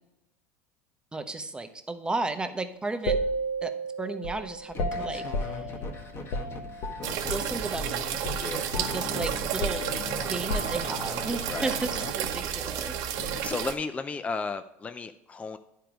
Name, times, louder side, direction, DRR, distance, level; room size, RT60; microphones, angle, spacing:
voice 1, 1.1-3.2 3.6-3.7 4.0-5.6 7.0-8.0 8.7-9.9 10.2-12.9, right 3 dB, 15° right, 8 dB, 0.8 m, -34 dB
sound 1, 3.1-7.5 7.8-8.0 8.2-11.2, equal, 70° left, 1.0 m, -33 dB
sound 2, 4.7-13.5, left 2 dB, 35° left, 1.5 m, -40 dB
sound 3, 7.0-13.7, right 10 dB, 60° right, 0.9 m, -32 dB
voice 2, 8.4-8.7 11.5-11.8 13.4-15.6, left 4 dB, 20° left, 10 dB, 0.4 m, -34 dB
10.0 x 4.6 x 5.0 m, 0.89 s
hypercardioid pair, 90°, 7 cm